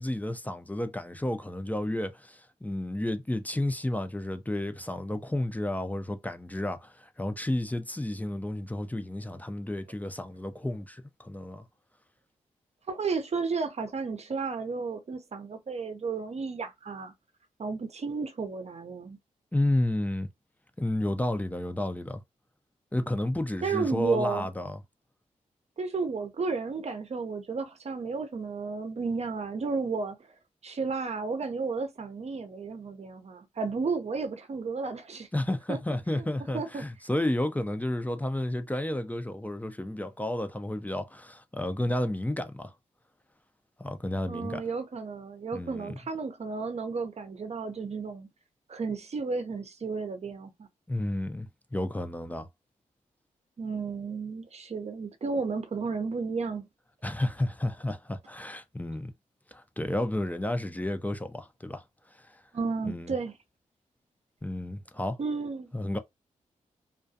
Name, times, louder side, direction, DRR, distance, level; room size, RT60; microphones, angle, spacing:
voice 1, 0.0-11.7 19.5-20.3 20.8-22.2 22.9-24.8 35.3-42.7 43.8-44.6 45.5-46.0 50.9-52.5 57.0-59.1 59.5-61.8 62.2-62.3 62.8-63.1 64.4-65.2 65.7-66.0, left 1 dB, 10° left, 0.5 m, -31 dB
voice 2, 12.9-17.1 17.6-19.2 23.6-24.5 25.8-30.2 30.6-35.3 35.7-35.8 36.1-36.2 36.5-36.8 44.3-48.3 48.7-50.7 53.6-56.7 62.5-63.3 65.2-65.7, right 4 dB, 50° right, 0.7 m, -32 dB
2.3 x 2.3 x 2.7 m
supercardioid pair, 45°, 14 cm